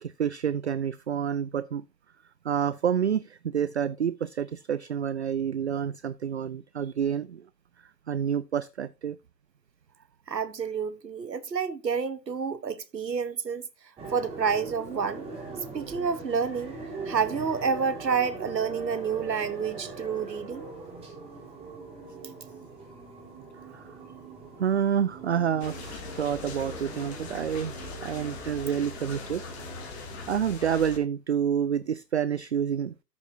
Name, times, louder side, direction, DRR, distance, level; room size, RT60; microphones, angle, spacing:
voice 1, 0.0-1.8 2.4-7.4 8.1-9.2 23.7-23.9 24.6-27.7 28.0-29.4 30.3-32.9, right 8 dB, 45° right, 0.4 m, -28 dB
voice 2, 10.3-13.7 14.1-15.3 15.7-16.7 17.0-20.6, right 6 dB, 80° right, 1.4 m, -29 dB
sound 1, 14.0-30.3, right 3 dB, 10° right, 3.9 m, -42 dB
sound 2, 25.6-31.0, left 4 dB, 40° left, 2.8 m, -41 dB
13.5 x 6.9 x 2.8 m
figure-of-eight pair, 130°, 50 cm